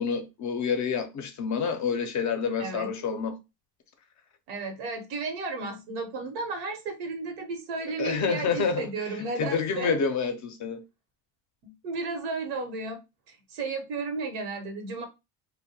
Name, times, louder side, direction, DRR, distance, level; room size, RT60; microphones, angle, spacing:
voice 1, 0.0-3.4 8.0-8.9 9.4-10.8, left 6 dB, 40° left, 0.5 m, -28 dB
voice 2, 2.6-2.9 4.5-10.0 11.6-13.0 13.3-15.0, right 3 dB, 85° right, 1.0 m, -33 dB
2.2 x 2.1 x 2.7 m
supercardioid pair, 100°, 48 cm